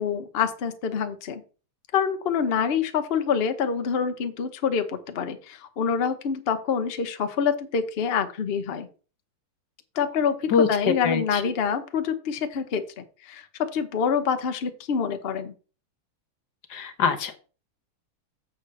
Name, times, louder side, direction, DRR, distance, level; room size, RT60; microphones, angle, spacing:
voice 1, 0.0-1.4 1.9-8.9 10.0-13.4 13.7-15.5, left 6 dB, 85° left, 8 dB, 0.5 m, -26 dB
voice 2, 11.0-11.4 16.7-17.4, left 6 dB, 55° left, 8 dB, 1.5 m, -23 dB
7.0 x 4.9 x 6.8 m, 0.36 s
omnidirectional pair, 2.4 m